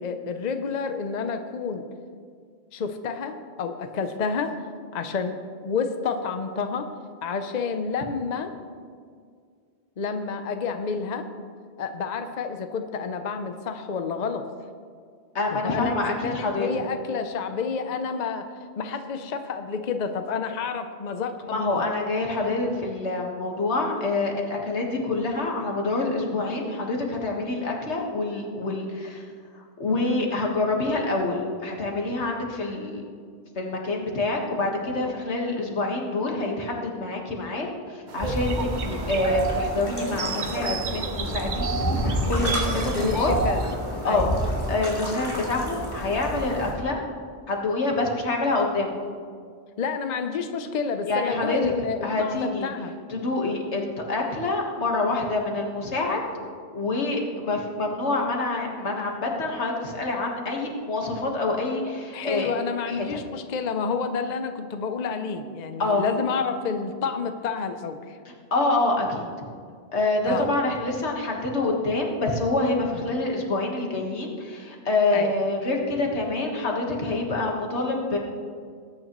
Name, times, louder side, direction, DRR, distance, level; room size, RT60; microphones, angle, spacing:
voice 1, 0.0-1.9 2.7-4.6 4.9-6.9 7.2-8.5 10.0-11.3 11.8-14.5 15.5-18.5 18.8-21.9 42.9-43.6 44.0-44.3 49.8-52.9 62.1-68.2 70.2-70.5 72.9-73.1 75.1-75.3, left 5 dB, 45° left, 7 dB, 0.7 m, -29 dB
voice 2, 15.4-16.8 21.5-29.2 29.8-33.0 33.6-42.8 43.1-43.3 44.0-44.3 44.7-47.0 47.5-48.9 51.1-51.7 52.0-52.7 53.1-56.3 56.7-62.5 63.0-63.2 65.8-66.1 68.5-69.2 69.9-78.2, left 2 dB, 85° left, 0 dB, 1.8 m, -26 dB
sound 1, 38.1-43.7, right 6 dB, 50° right, 0.7 m, -32 dB
sound 2, 38.2-46.7, equal, 20° left, 2.7 m, -29 dB
19.5 x 9.2 x 3.1 m, 2.1 s
omnidirectional pair, 1.1 m